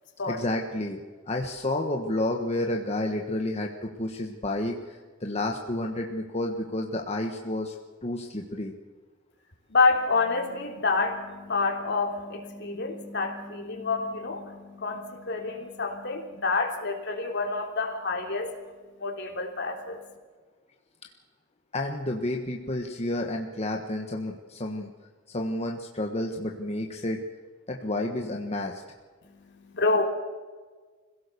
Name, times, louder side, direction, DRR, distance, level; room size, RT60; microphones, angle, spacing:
voice 1, 0.3-1.0 1.3-7.8 8.0-8.7 21.0-21.1 21.7-24.9 25.3-27.2 27.7-28.8, left 1 dB, 35° left, 1 dB, 1.4 m, -30 dB
voice 2, 9.7-18.5 19.0-20.0 29.2-30.0, left 3 dB, 60° left, 2 dB, 3.3 m, -28 dB
26.0 x 17.0 x 6.9 m, 1.4 s
head